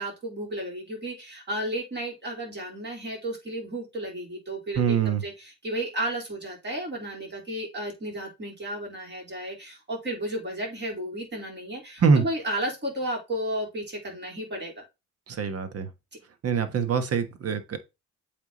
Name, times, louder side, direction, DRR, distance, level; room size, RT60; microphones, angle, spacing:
voice 1, 0.0-14.8, right 1 dB, 35° right, 4.0 m, -33 dB
voice 2, 4.8-5.2 12.0-12.2 15.3-15.9 16.4-17.8, right 6 dB, 50° right, 1.3 m, -24 dB
8.0 x 3.6 x 4.0 m
cardioid pair, 90°, 30 cm